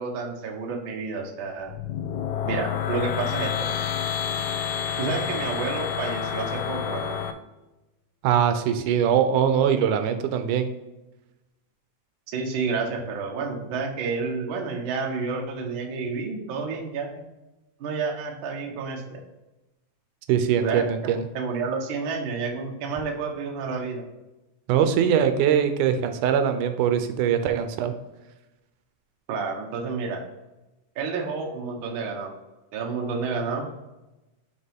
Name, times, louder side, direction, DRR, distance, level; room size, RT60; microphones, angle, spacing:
voice 1, 0.0-1.8 2.4-3.7 5.0-7.2 12.3-17.1 17.8-19.2 20.6-20.8 21.3-24.0 29.3-30.2 30.9-32.3 32.7-33.7, right 4 dB, 65° right, 2 dB, 1.2 m, -30 dB
sound 1, 1.6-7.3, left 8 dB, 80° left, 2.0 m, -29 dB
voice 2, 8.2-10.7 20.3-21.2 24.7-27.9, right 8 dB, 80° right, 8 dB, 2.1 m, -22 dB
6.5 x 4.7 x 3.5 m, 1.0 s
omnidirectional pair, 3.6 m